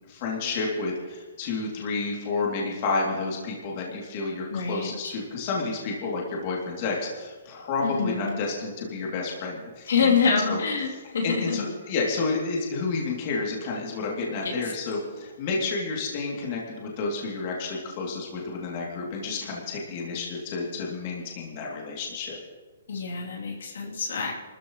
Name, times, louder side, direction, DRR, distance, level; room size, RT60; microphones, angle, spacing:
voice 1, 0.1-10.6 11.2-22.4, left 3 dB, 35° left, -3 dB, 2.8 m, -30 dB
voice 2, 4.5-5.1 7.8-8.3 9.9-11.6 14.4-14.7 22.9-24.3, left 5 dB, 75° left, -2 dB, 3.0 m, -26 dB
28.5 x 14.0 x 3.2 m, 1.4 s
hypercardioid pair, 165°, 0 cm